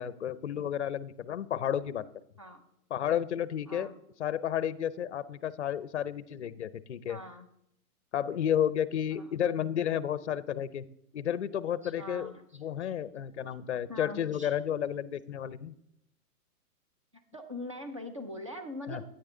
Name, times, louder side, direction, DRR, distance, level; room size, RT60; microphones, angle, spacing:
voice 1, 0.0-2.0 2.9-3.9 4.2-7.2 8.1-10.8 11.1-12.3 12.6-15.7 18.9-19.0, left 9 dB, 50° left, 16 dB, 0.6 m, -32 dB
voice 2, 7.1-7.5 9.1-9.3 11.8-12.9 13.9-14.6 17.1-19.0, left 1 dB, 20° right, 6 dB, 0.5 m, -43 dB
13.5 x 9.6 x 3.8 m, 0.76 s
hypercardioid pair, 180°, 44 cm